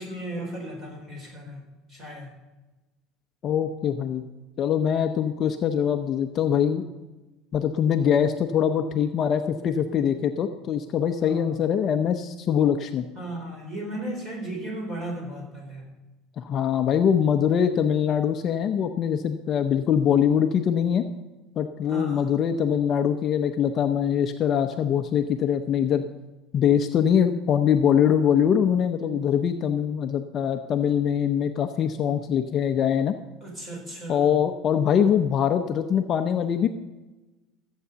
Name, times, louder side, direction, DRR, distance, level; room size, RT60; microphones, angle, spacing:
voice 1, 0.0-1.6 1.9-2.3 11.2-11.5 13.2-15.8 21.9-22.3 33.4-34.4, right 1 dB, 25° right, 0 dB, 4.5 m, -35 dB
voice 2, 3.4-4.2 4.6-6.9 7.5-13.1 16.4-21.0 21.6-26.1 26.5-33.2 34.1-36.7, left 8 dB, 30° left, 6 dB, 0.6 m, -23 dB
14.5 x 8.2 x 6.8 m, 1.1 s
cardioid pair, 170°, 0 cm